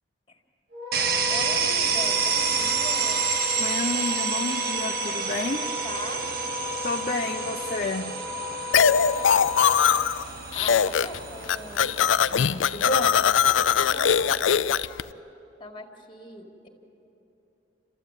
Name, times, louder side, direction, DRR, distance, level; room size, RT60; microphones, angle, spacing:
Wind instrument woodwind instrument, 0.7-9.7, left 5 dB, 80° right, 6.8 m, -35 dB
sound 1, 0.9-14.6, right 6 dB, 55° right, 1.3 m, -30 dB
voice 1, 1.3-3.3 5.3-6.2 10.5-11.9 12.9-13.3 13.8-14.3 15.6-16.7, left 2 dB, 25° left, 4 dB, 2.1 m, -40 dB
voice 2, 3.6-5.6 6.8-8.1 12.3-13.1, left 3 dB, 45° left, 3 dB, 0.7 m, -30 dB
sound 2, 8.7-10.2 10.5-11.2 11.4-15.0, left 7 dB, 85° left, 0.5 m, -21 dB
29.5 x 13.5 x 9.1 m, 3.0 s
head